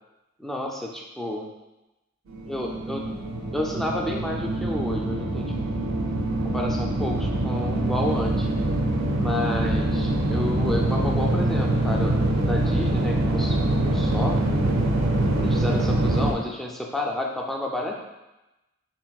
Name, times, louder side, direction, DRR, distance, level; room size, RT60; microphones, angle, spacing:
voice 1, 0.4-1.5 2.5-3.1 3.5-5.5 6.4-8.5 9.2-14.4 15.3-18.0, left 1 dB, ahead, -1 dB, 0.4 m, -31 dB
sound 1, 2.3-16.3, right 1 dB, 75° right, 0.5 m, -24 dB
4.3 x 3.3 x 2.3 m, 1.0 s
head